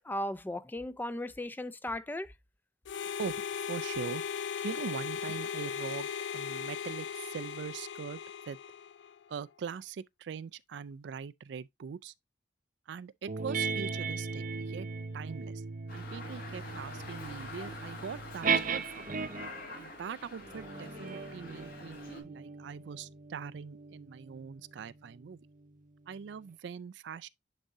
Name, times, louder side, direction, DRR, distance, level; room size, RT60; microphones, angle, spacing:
voice 1, 0.0-2.3, left 1 dB, 10° left, 0.4 m, -36 dB
Harmonica, 2.8-9.2, left 7 dB, 80° left, 0.4 m, -38 dB
voice 2, 3.2-4.2 4.6-8.2 8.5-8.6 9.3-12.1 12.9-14.9 15.1-15.6 15.9-19.1 19.7-25.4 26.1-27.3, right 6 dB, 70° right, 0.4 m, -42 dB
sound 1, 13.3-19.7 20.4-25.3, right 5 dB, 50° right, 0.7 m, -37 dB
Dog, 15.9-22.2, left 2 dB, 55° left, 2.4 m, -46 dB
10.0 x 4.2 x 2.6 m
head